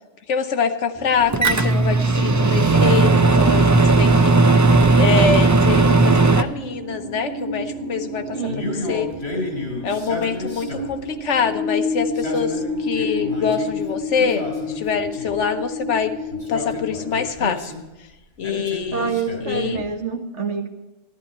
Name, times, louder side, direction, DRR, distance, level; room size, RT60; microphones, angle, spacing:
voice 1, 0.3-3.7 4.0-4.3 5.0-8.4 8.9-9.1 9.8-16.1 16.5-17.7 18.4-19.2 19.4-19.8, left 6 dB, 80° left, 8 dB, 1.3 m, -25 dB
sound 1, 0.9-17.3, left 2 dB, 15° left, 3.8 m, -31 dB
Microwave oven, 1.3-6.4, right 3 dB, 25° right, 0.4 m, -15 dB
voice 2, 1.3-1.6 8.3-8.8 18.9-20.7, right 5 dB, 90° right, 5 dB, 1.7 m, -27 dB
Male speech man speaking, 8.5-11.0 12.0-13.7 14.2-15.4 16.3-17.8 18.4-19.9, left 2 dB, 60° left, 4.3 m, -32 dB
14.0 x 12.0 x 4.3 m, 1.1 s
omnidirectional pair, 1.2 m